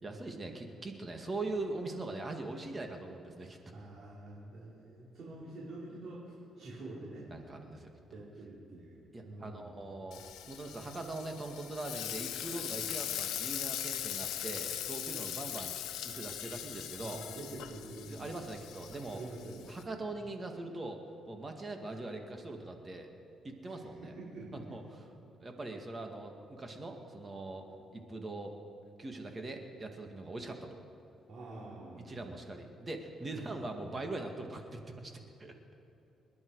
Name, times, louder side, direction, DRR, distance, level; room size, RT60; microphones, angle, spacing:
voice 1, 0.0-3.6 7.3-7.9 9.1-15.8 16.0-17.2 18.1-19.2 19.7-23.1 23.4-24.1 24.5-24.8 25.4-28.6 29.0-30.8 32.1-35.1 35.4-35.5, right 2 dB, 30° right, 3 dB, 2.0 m, -41 dB
voice 2, 3.4-7.3 8.1-9.0 9.2-9.8 12.7-12.9 17.0-18.3 19.1-19.7 23.7-24.6 31.3-32.3 33.3-33.7, right 2 dB, 60° right, -7 dB, 4.2 m, -47 dB
Frying (food), 10.1-19.8, left 11 dB, 90° left, 1.0 m, -40 dB
27.5 x 10.5 x 4.8 m, 2.9 s
cardioid pair, 90°, 0 cm